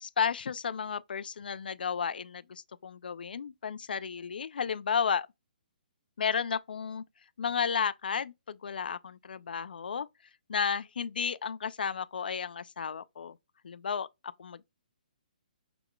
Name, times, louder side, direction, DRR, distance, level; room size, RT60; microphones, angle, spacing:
voice 1, 0.0-5.3 6.2-7.0 7.4-10.1 10.5-13.4 13.6-14.6, left 6 dB, 80° left, 0.4 m, -33 dB
5.8 x 3.7 x 2.3 m
hypercardioid pair, 165°, 5 cm